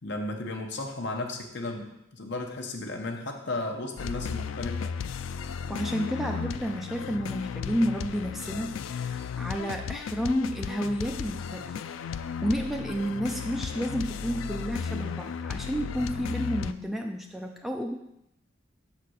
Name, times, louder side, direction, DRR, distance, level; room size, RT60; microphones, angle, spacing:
voice 1, 0.0-4.9, left 2 dB, 60° left, 2 dB, 1.0 m, -34 dB
sound 1, 4.0-16.7, left 6 dB, 75° left, 0.3 m, -35 dB
voice 2, 5.7-11.8 12.1-18.0, equal, ahead, 2 dB, 0.5 m, -31 dB
6.5 x 4.2 x 6.4 m, 0.81 s
head